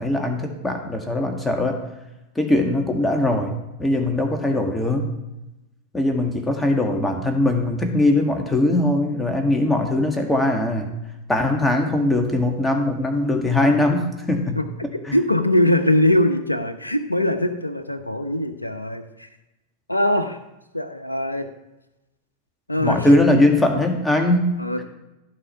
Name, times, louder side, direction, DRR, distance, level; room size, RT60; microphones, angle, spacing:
voice 1, 0.0-1.8 2.4-5.1 5.9-10.9 11.3-14.6 15.1-15.2 22.8-24.5, left 1 dB, 10° left, 3 dB, 1.8 m, -20 dB
voice 2, 15.1-19.3 19.9-20.4 20.7-21.5 22.7-23.1 24.6-24.8, left 1 dB, 85° left, 8 dB, 0.9 m, -21 dB
14.5 x 4.9 x 5.8 m, 0.98 s
figure-of-eight pair, 90°, 0 cm